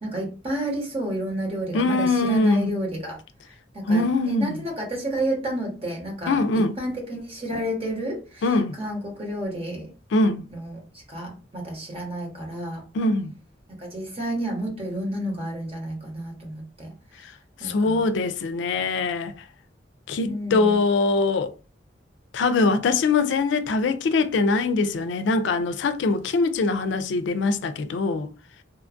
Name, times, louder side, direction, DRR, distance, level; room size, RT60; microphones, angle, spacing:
voice 1, 0.0-3.2 3.7-8.5 8.8-9.9 10.5-12.8 13.8-17.3 17.6-18.0 20.2-20.8, right 1 dB, 35° right, 1.1 m, -31 dB
voice 2, 1.7-2.7 3.9-4.6 6.3-6.7 8.4-8.7 10.1-10.5 12.9-13.3 17.6-19.3 20.1-21.5 22.3-28.3, left 3 dB, 75° left, 0.3 m, -22 dB
2.9 x 2.3 x 2.5 m
head